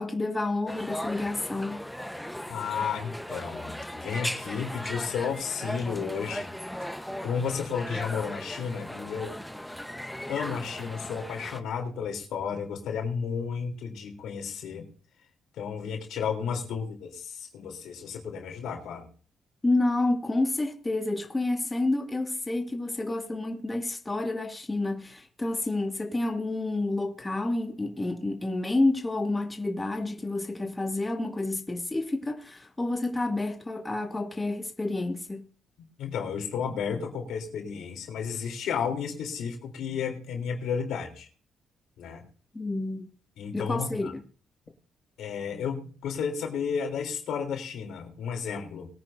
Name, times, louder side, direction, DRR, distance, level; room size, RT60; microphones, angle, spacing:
voice 1, 0.0-1.8 19.6-35.4 42.5-43.1 43.5-44.2, left 2 dB, 20° left, 2.2 m, -29 dB
sound 1, 0.7-11.6, equal, 5° left, 1.1 m, -37 dB
voice 2, 2.5-6.5 7.2-9.4 10.3-14.9 15.6-19.1 36.0-41.3 42.0-42.2 43.4-44.1 45.2-48.9, left 6 dB, 75° left, 3.5 m, -32 dB
22.0 x 9.7 x 2.7 m
supercardioid pair, 65°, 0 cm